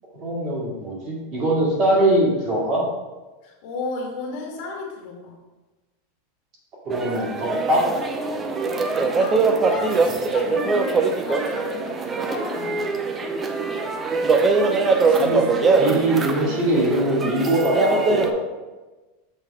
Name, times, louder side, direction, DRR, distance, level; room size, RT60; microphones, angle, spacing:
voice 1, 0.2-2.8 6.9-7.9 15.2-15.4 15.8-18.4, right 1 dB, 35° right, -4 dB, 1.8 m, -21 dB
voice 2, 3.4-5.4 7.1-7.4 9.2-13.2 14.8-15.7, left 3 dB, 50° left, 0 dB, 1.4 m, -34 dB
sound 1, 6.9-18.3, right 4 dB, 15° right, 0.4 m, -22 dB
6.3 x 3.5 x 4.7 m, 1.2 s
supercardioid pair, 160°, 0 cm